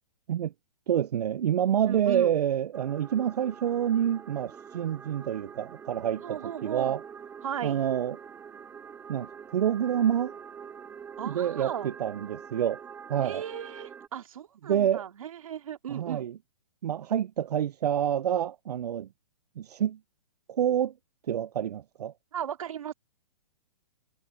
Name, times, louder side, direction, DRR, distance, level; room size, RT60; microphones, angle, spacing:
voice 1, 0.9-7.0 7.6-8.2 9.1-10.3 11.2-12.8 13.1-13.4 14.6-15.1 15.9-16.4 16.8-19.1 19.6-20.0 20.5-20.9 21.3-22.1, right 10 dB, 90° right, 0.5 m, -27 dB
voice 2, 1.9-2.3 6.2-7.0 7.4-7.8 11.2-11.9 13.2-16.3 22.3-22.9, right 9 dB, 60° right, 2.7 m, -36 dB
sound 1, 2.7-14.1, right 7 dB, 10° right, 3.2 m, -45 dB
hypercardioid pair, 175°, 20 cm